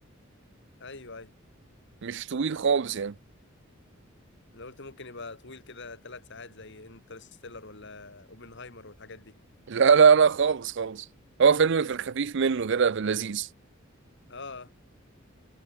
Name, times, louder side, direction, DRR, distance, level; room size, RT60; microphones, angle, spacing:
voice 1, 0.8-1.3 4.5-9.3 11.8-12.0 14.3-14.7, left 3 dB, 60° left, 4.2 m, -44 dB
voice 2, 2.0-3.1 9.7-11.0 11.4-13.5, right 6 dB, 65° right, 0.5 m, -22 dB
head